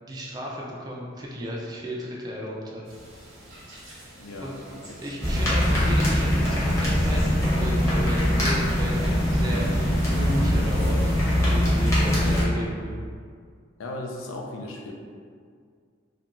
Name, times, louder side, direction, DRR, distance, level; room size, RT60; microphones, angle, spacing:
voice 1, 0.0-2.8 4.4-4.5 5.0-11.0 11.3-13.0, equal, 20° right, -4 dB, 0.3 m, -35 dB
sound 1, 2.8-11.3, equal, 75° right, 0.9 m, -40 dB
voice 2, 4.2-4.8 5.3-5.5 13.8-14.9, left 1 dB, 90° left, 0 dB, 0.4 m, -37 dB
sound 2, 5.2-12.4, equal, 15° left, 0.7 m, -22 dB
2.4 x 2.2 x 2.9 m, 2.1 s
head